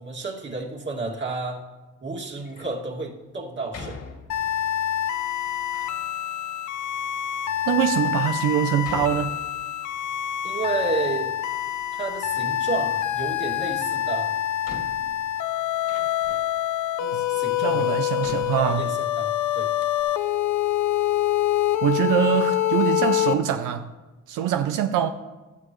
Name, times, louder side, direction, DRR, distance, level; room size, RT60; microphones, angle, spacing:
voice 1, 0.0-1.6 2.0-4.0 10.4-11.3 11.9-14.3 17.0-18.0 18.6-19.7, right 3 dB, 40° right, 2.5 m, -31 dB
Door, 2.3-2.8 3.7-4.7 5.4-6.0 6.8-6.9 7.6-7.7 8.8-10.0 10.3-11.4 11.7-12.5 13.9-14.0 14.6-16.6 17.3-17.4 18.2-19.3 19.5-19.6 19.8-20.0, left 4 dB, 55° left, 2.2 m, -43 dB
sound 1, 4.3-23.3, left 12 dB, 75° left, 0.8 m, -26 dB
voice 2, 7.7-9.4 17.1-17.2 17.6-18.9 21.8-23.9 24.3-25.1, right 10 dB, 90° right, 0.7 m, -23 dB
16.5 x 12.5 x 3.2 m
cardioid pair, 90°, 30 cm